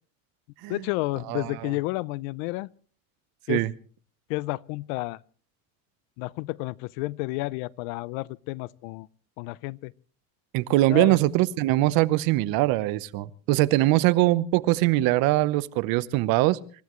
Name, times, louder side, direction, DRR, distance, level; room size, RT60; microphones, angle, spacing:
voice 1, 0.7-2.7 3.5-3.7 4.3-5.2 6.2-9.1 9.4-9.9 10.9-11.2, left 21 dB, 80° left, 0.7 m, -31 dB
voice 2, 1.3-1.7 3.5-3.7 10.5-16.6, right 17 dB, 60° right, 1.0 m, -22 dB
27.0 x 15.5 x 3.1 m
cardioid pair, 145°, 39 cm